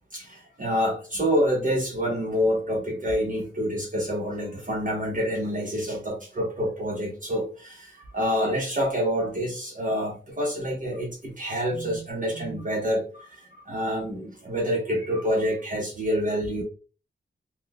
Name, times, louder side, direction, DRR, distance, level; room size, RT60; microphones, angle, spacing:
voice 1, 0.1-16.6, equal, 40° right, -2 dB, 0.9 m, -27 dB
4.3 x 2.1 x 2.3 m, 0.37 s
cardioid pair, 55°, 20 cm